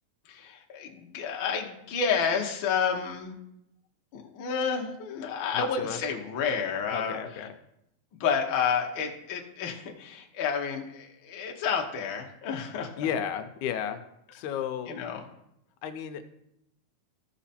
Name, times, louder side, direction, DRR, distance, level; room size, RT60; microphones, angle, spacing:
voice 1, 0.2-3.4 4.1-7.5 8.1-13.1 14.9-15.2, left 6 dB, 60° left, 1 dB, 1.4 m, -30 dB
voice 2, 5.5-6.0 6.9-7.6 13.0-14.0 14.3-14.9 15.8-16.2, left 8 dB, 85° left, 8 dB, 2.0 m, -33 dB
14.0 x 5.0 x 4.2 m, 0.80 s
omnidirectional pair, 3.5 m